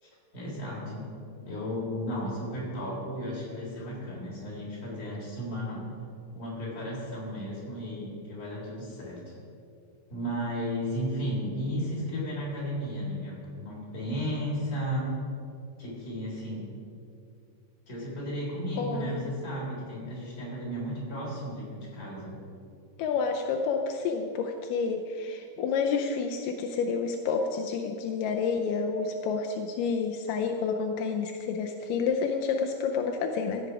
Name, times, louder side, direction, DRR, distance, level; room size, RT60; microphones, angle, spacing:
voice 1, 0.0-1.1 1.4-5.9 6.3-9.3 10.1-15.1 15.8-16.7 17.9-22.3, equal, 25° left, -6 dB, 3.8 m, -34 dB
voice 2, 18.8-19.3 23.0-33.7, left 5 dB, 80° left, 3 dB, 2.3 m, -29 dB
15.0 x 8.1 x 4.8 m, 2.5 s
omnidirectional pair, 3.8 m